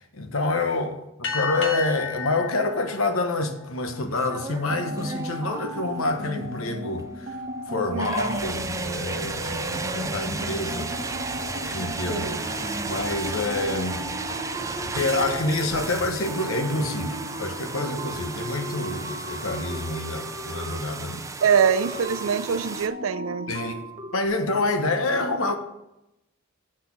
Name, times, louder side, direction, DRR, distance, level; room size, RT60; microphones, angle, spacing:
voice 1, 0.0-7.4 7.7-10.9 11.6-12.3 12.8-14.0 14.8-21.2 23.5-23.8 24.1-25.6, left 2 dB, 80° left, 1.1 m, -27 dB
sound 1, 1.2-4.2, left 5 dB, 65° left, 1.4 m, -33 dB
sound 2, 3.9-22.9, right 3 dB, 15° right, 0.4 m, -35 dB
sound 3, 4.6-24.3, right 1 dB, 35° right, 1.1 m, -36 dB
voice 2, 7.9-8.4 12.1-12.4 21.4-23.5, right 7 dB, 75° right, 0.5 m, -24 dB
6.6 x 5.9 x 7.3 m
head